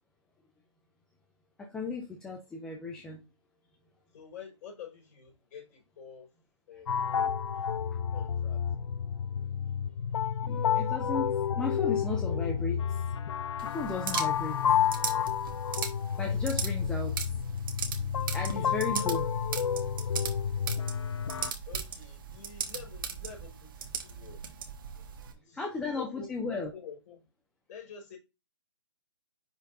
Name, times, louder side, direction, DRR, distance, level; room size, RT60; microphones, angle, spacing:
voice 1, 1.6-3.2 9.4-9.7 10.4-13.0 13.6-14.6 16.2-17.1 18.3-19.2 25.5-26.7, left 3 dB, 5° left, 0.4 m, -35 dB
voice 2, 4.1-6.3 6.7-7.1 7.5-7.7 8.1-8.6 18.4-19.1 21.6-24.4 25.3-27.2 27.7-28.2, left 6 dB, 35° left, 4.5 m, -48 dB
sound 1, 6.9-21.5, left 8 dB, 65° left, 0.5 m, -30 dB
sound 2, 13.6-25.3, right 7 dB, 45° right, 1.3 m, -39 dB
10.0 x 4.1 x 2.5 m
hypercardioid pair, 150°, 16 cm